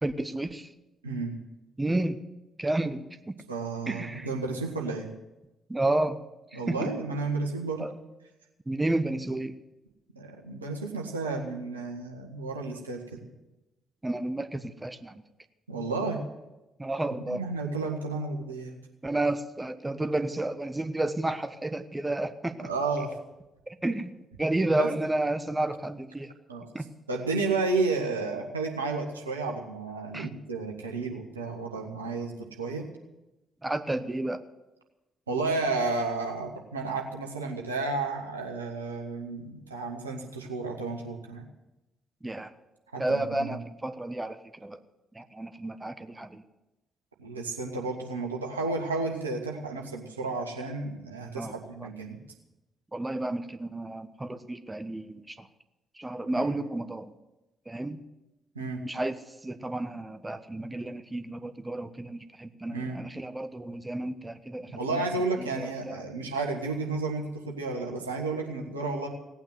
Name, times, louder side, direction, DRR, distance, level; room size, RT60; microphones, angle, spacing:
voice 1, 0.0-0.7 1.8-2.2 2.6-3.4 3.9-4.3 5.7-6.2 6.5-6.9 7.8-7.9 8.7-9.6 14.0-15.2 16.8-17.4 19.0-22.7 23.7-26.3 26.7-26.9 30.1-30.3 33.6-34.4 42.2-42.5 43.0-44.8 45.1-46.4 51.3-51.5 52.9-55.5 56.0-57.1 57.7-58.0 58.8-66.0, right 2 dB, 15° right, 10 dB, 1.1 m, -31 dB
voice 2, 1.0-1.4 3.5-5.1 6.5-7.9 10.1-13.0 15.7-16.2 17.3-18.7 22.6-23.1 24.8-24.9 26.5-26.7 27.1-32.8 35.3-41.4 42.9-43.6 47.2-52.2 56.3-56.4 58.5-58.8 62.7-63.0 64.7-69.1, right 3 dB, 85° right, 0 dB, 1.5 m, -32 dB
17.5 x 8.9 x 7.9 m, 0.98 s
figure-of-eight pair, 40°, 0 cm